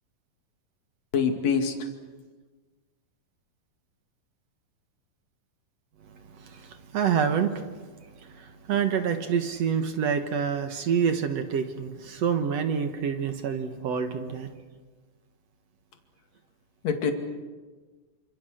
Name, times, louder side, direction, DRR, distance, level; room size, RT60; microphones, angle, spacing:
voice 1, 1.1-1.7 16.8-17.1, left 6 dB, 50° left, 5 dB, 3.3 m, -24 dB
voice 2, 6.1-7.9 8.2-14.5, right 7 dB, 60° right, 8 dB, 2.0 m, -27 dB
27.5 x 26.5 x 6.5 m, 1.4 s
omnidirectional pair, 4.1 m